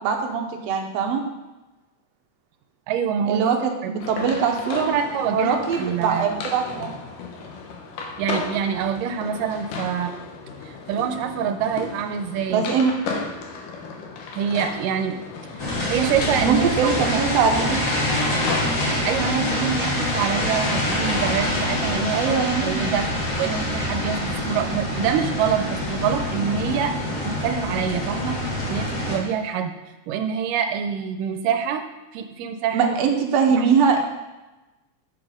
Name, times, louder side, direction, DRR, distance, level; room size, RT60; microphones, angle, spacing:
voice 1, 0.0-1.2 3.3-4.9 5.3-6.9 12.5-12.9 16.4-18.1 22.1-22.9 32.7-34.0, right 6 dB, 65° right, 2 dB, 1.7 m, -22 dB
voice 2, 2.9-3.5 3.8-3.9 4.9-6.3 8.2-10.1 10.6-12.6 14.4-15.2 15.6-17.2 19.0-23.1 23.4-26.9 27.2-29.7 30.1-31.8 32.1-33.0 33.6-33.7, right 7 dB, 90° right, 7 dB, 2.2 m, -26 dB
sound 1, 4.0-22.1, left 4 dB, 80° left, 2.7 m, -35 dB
sound 2, 15.6-29.2, left 1 dB, 60° left, 0.8 m, -25 dB
7.6 x 6.1 x 5.0 m, 1.1 s
omnidirectional pair, 3.8 m